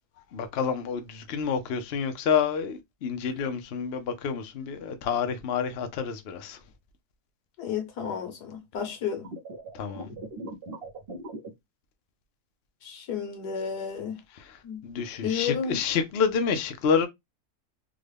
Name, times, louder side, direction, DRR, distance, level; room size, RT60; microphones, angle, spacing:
voice 1, 0.3-6.6 9.8-10.1 14.3-14.6 14.8-17.1, left 6 dB, 60° left, 0.6 m, -28 dB
voice 2, 7.6-9.3 12.8-14.2 14.6-14.8 15.2-15.8, left 7 dB, 85° left, 1.6 m, -32 dB
sound 1, 9.2-11.5, right 2 dB, 45° right, 0.8 m, -39 dB
3.7 x 2.1 x 3.2 m
omnidirectional pair, 1.7 m